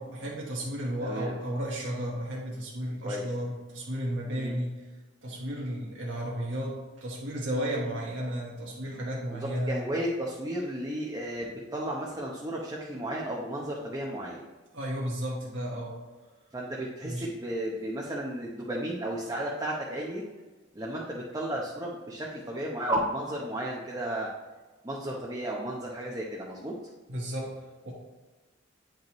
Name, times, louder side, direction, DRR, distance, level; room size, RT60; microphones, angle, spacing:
voice 1, 0.0-4.8 5.2-9.8 14.7-16.0 17.0-17.3 27.1-27.9, equal, 80° right, -4 dB, 1.5 m, -33 dB
voice 2, 1.0-1.4 3.0-3.3 4.3-4.5 9.3-14.5 16.5-20.2 20.7-24.3 24.8-26.7, right 1 dB, 20° right, -3 dB, 0.8 m, -33 dB
8.8 x 5.3 x 3.1 m, 1.2 s
head